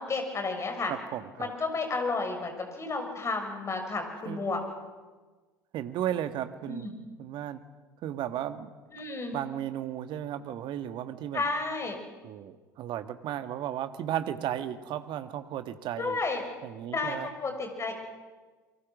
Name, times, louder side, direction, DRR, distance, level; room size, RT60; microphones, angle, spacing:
voice 1, 0.0-0.9 1.4-4.6 6.7-6.9 8.9-9.3 11.3-12.0 16.0-16.4 16.9-17.2 17.4-17.9, left 3 dB, 25° left, 5 dB, 6.2 m, -32 dB
voice 2, 0.9-1.5 4.2-4.5 5.7-6.9 7.2-7.6 8.0-8.7 9.3-11.4 12.2-16.2 16.6-17.3, right 11 dB, 50° right, 10 dB, 1.6 m, -34 dB
29.0 x 23.5 x 6.3 m, 1.3 s
figure-of-eight pair, 65°, 11 cm